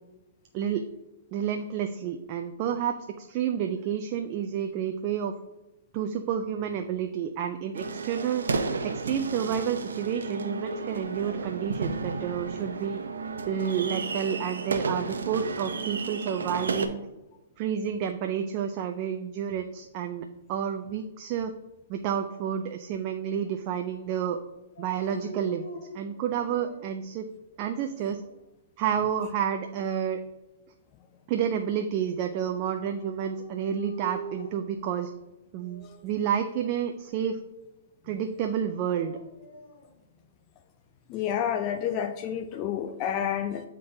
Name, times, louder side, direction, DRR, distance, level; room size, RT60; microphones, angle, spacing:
voice 1, 0.5-0.9 1.3-5.3 5.9-8.5 8.8-13.0 13.5-17.1 17.6-21.5 21.9-24.4 24.8-25.7 25.9-27.3 27.6-28.2 28.8-30.2 31.3-35.1 35.5-37.4 38.1-39.2, right 8 dB, 40° right, 5 dB, 0.4 m, -30 dB
sound 1, 7.7-16.9, right 4 dB, 90° right, 0.7 m, -32 dB
Dog, 24.7-27.0 27.6-28.3 32.5-34.8 35.6-36.0 38.6-39.9, right 1 dB, 65° left, 1.9 m, -43 dB
voice 2, 41.1-43.6, left 9 dB, 35° left, 7 dB, 0.4 m, -29 dB
9.4 x 3.7 x 2.7 m, 0.99 s
hypercardioid pair, 140°, 0 cm